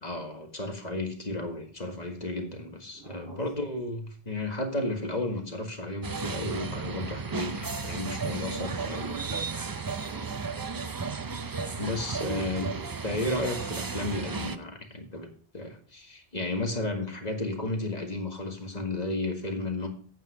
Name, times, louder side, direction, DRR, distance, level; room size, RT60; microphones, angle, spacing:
voice 1, 0.0-9.2 11.8-12.7 13.0-15.3 15.5-19.9, left 2 dB, 40° left, 3 dB, 1.9 m, -33 dB
voice 2, 2.9-3.4 9.0-10.4 12.2-12.9, right 4 dB, 65° right, -6 dB, 3.7 m, -44 dB
sound 1, 6.0-14.6, right 4 dB, 30° right, 0.4 m, -34 dB
8.9 x 8.4 x 4.8 m, 0.44 s
omnidirectional pair, 1.1 m